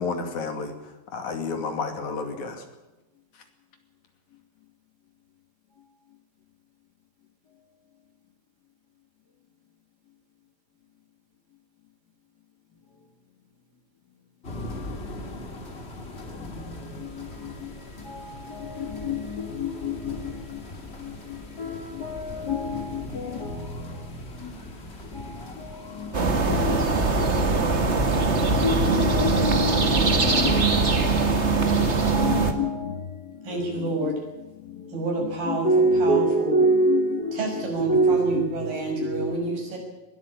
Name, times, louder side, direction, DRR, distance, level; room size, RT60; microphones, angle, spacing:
voice 1, 0.0-2.7, left 4 dB, 60° left, 3.8 m, -31 dB
sound 1, 14.4-32.2, left 1 dB, 20° left, 2.2 m, -40 dB
voice 2, 18.5-20.1 21.6-23.7 25.6-25.7 26.0-26.1 26.5-26.8 28.6-30.9 32.1-33.0 33.5-34.1 35.5-39.4, equal, 40° left, 1.6 m, -26 dB
sound 2, 26.1-32.5, right 3 dB, 30° right, 1.2 m, -22 dB
voice 3, 33.4-34.2 34.9-35.7 36.0-36.6 37.3-39.8, right 3 dB, 85° right, 7.8 m, -28 dB
21.0 x 13.0 x 10.0 m
omnidirectional pair, 3.9 m